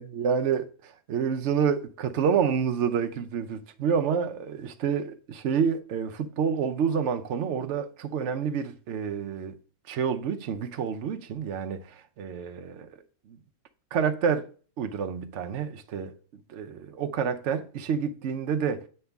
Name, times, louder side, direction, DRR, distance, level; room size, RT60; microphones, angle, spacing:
voice 1, 0.0-9.6 9.9-12.9 13.3-13.4 13.9-14.4 14.8-16.1 16.5-18.8, right 7 dB, 60° right, 0.9 m, -28 dB
8.6 x 5.5 x 3.5 m
omnidirectional pair, 1.5 m